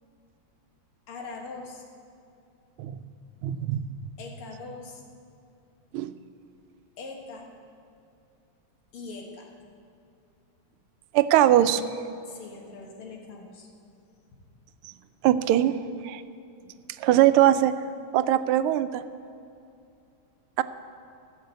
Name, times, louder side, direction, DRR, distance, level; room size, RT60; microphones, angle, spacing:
voice 1, 1.1-1.8 4.2-5.0 7.0-7.5 8.9-9.5 12.3-13.7, left 3 dB, 85° left, 1 dB, 2.4 m, -41 dB
voice 2, 3.4-3.9 5.9-6.1 11.1-11.8 15.2-15.8 16.0-16.2 17.0-17.7 18.1-19.0 20.6-20.7, right 12 dB, 85° right, 13 dB, 1.5 m, -21 dB
14.0 x 6.7 x 8.1 m, 2.6 s
omnidirectional pair, 2.3 m